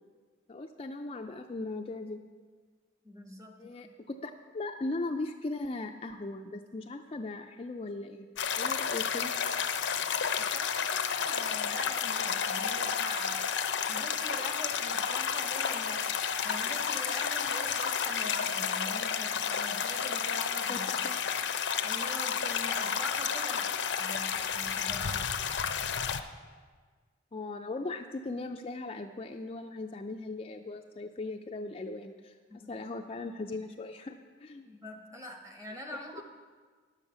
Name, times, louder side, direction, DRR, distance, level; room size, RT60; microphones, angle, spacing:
voice 1, 0.5-2.2 3.6-8.3 8.6-9.3 20.7-21.2 27.3-32.3 32.7-34.7 36.1-36.2, left 2 dB, 30° left, 4 dB, 0.4 m, -38 dB
voice 2, 3.0-3.9 10.4-16.1 16.4-21.1 21.8-25.4 32.5-32.8 34.7-36.2, equal, 15° right, 2 dB, 1.1 m, -44 dB
sound 1, 8.4-26.2, left 7 dB, 75° left, 0.6 m, -31 dB
10.5 x 7.3 x 6.9 m, 1.5 s
head